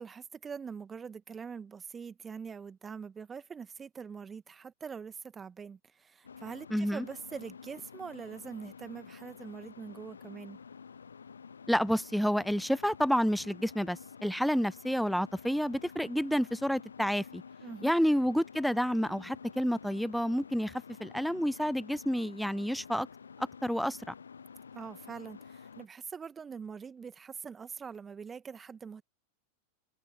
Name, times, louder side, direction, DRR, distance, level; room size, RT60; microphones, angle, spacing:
voice 1, 0.0-10.6 17.6-18.0 24.7-29.0, right 6 dB, 20° right, 1.7 m, -44 dB
sound 1, 6.2-25.9, left 6 dB, 70° left, 0.7 m, -50 dB
voice 2, 6.7-7.0 11.7-17.4 17.8-20.7 21.0-23.1 23.6-24.0, equal, ahead, 0.5 m, -29 dB
figure-of-eight pair, 90°, 0 cm